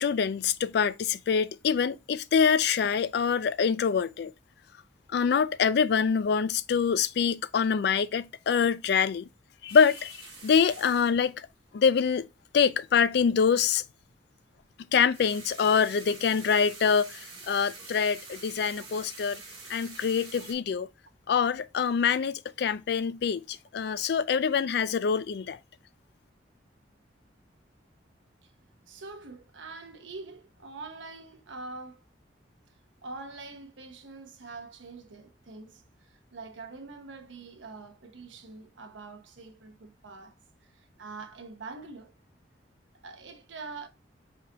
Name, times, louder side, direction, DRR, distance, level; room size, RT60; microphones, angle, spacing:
voice 1, 0.0-4.3 5.1-9.3 9.6-10.2 10.4-11.5 11.7-12.3 12.5-13.8 14.9-19.4 19.7-20.9 21.3-25.6, left 6 dB, 60° left, 0.3 m, -25 dB
sound 1, 9.7-12.2 15.0-20.5, right 3 dB, 25° right, 2.2 m, -47 dB
voice 2, 28.9-32.1 33.0-42.1 43.0-43.9, right 3 dB, 85° right, 0.9 m, -44 dB
5.0 x 3.7 x 2.8 m
head